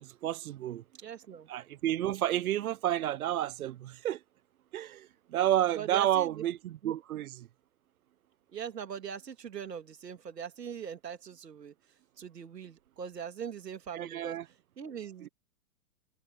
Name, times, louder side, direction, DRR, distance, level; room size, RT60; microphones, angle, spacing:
voice 1, 0.0-0.8 1.5-4.2 4.7-7.4 13.9-14.4 15.2-15.3, right 12 dB, 60° right, 1.0 m, -31 dB
voice 2, 1.0-1.5 5.7-6.4 6.8-6.9 8.5-11.7 12.2-14.4 14.8-15.3, right 8 dB, 80° right, 3.0 m, -41 dB
hypercardioid pair, 125°, 48 cm